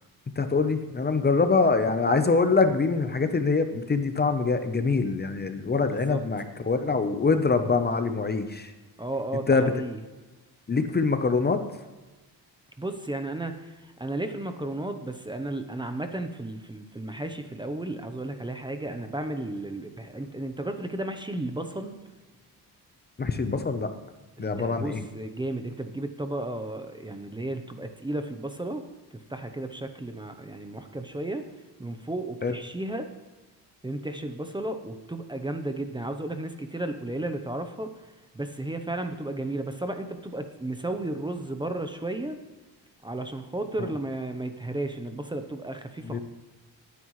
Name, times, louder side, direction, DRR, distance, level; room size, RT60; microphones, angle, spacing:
voice 1, 0.4-8.7 9.5-9.7 10.7-11.6 23.2-23.9 24.4-25.0 32.4-32.5 43.8-43.9 46.0-46.2, left 4 dB, 25° left, 8 dB, 0.8 m, -24 dB
voice 2, 5.8-6.2 9.0-10.0 12.8-22.0 24.4-28.8 29.3-31.5 31.8-33.1 33.8-37.9 38.3-42.4 43.0-46.2, right 1 dB, 10° right, 7 dB, 0.8 m, -33 dB
19.0 x 9.6 x 3.2 m, 1.2 s
cardioid pair, 130°, 38 cm